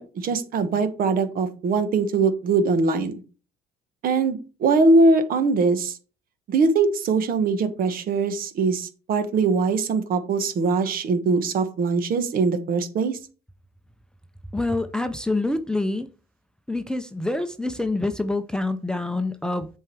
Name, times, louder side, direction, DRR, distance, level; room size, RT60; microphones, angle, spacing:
voice 1, 0.0-3.1 4.0-6.0 6.5-13.2, right 3 dB, 60° right, 1.3 m, -22 dB
voice 2, 14.5-16.1 16.7-19.7, left 2 dB, 5° left, 0.6 m, -26 dB
7.3 x 4.7 x 4.6 m
cardioid pair, 110°, 17 cm